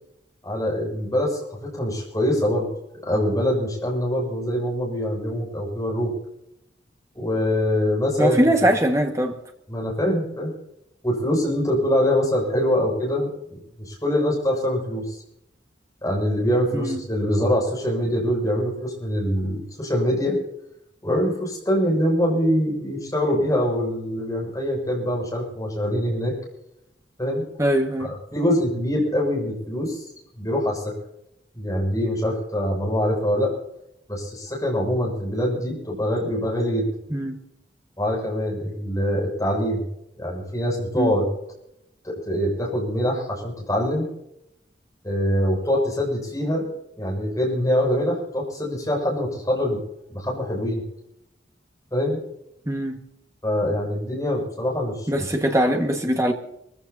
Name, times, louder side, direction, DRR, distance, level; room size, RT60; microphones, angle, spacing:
voice 1, 0.4-2.7 3.0-6.1 7.1-8.4 9.7-10.5 11.0-13.6 13.8-15.2 16.0-20.4 21.0-26.3 27.2-27.4 28.0-30.1 30.3-30.9 31.5-33.5 34.1-36.9 38.0-39.8 40.2-41.3 42.0-44.1 45.0-46.7 47.0-49.8 50.1-50.8 51.9-52.2 53.4-55.1, equal, 20° left, 6.9 m, -24 dB
voice 2, 8.2-9.4 16.7-17.0 27.6-28.1 37.1-37.4 40.9-41.2 52.6-53.0 55.1-56.3, right 1 dB, 15° right, 1.8 m, -22 dB
24.5 x 15.5 x 2.9 m
head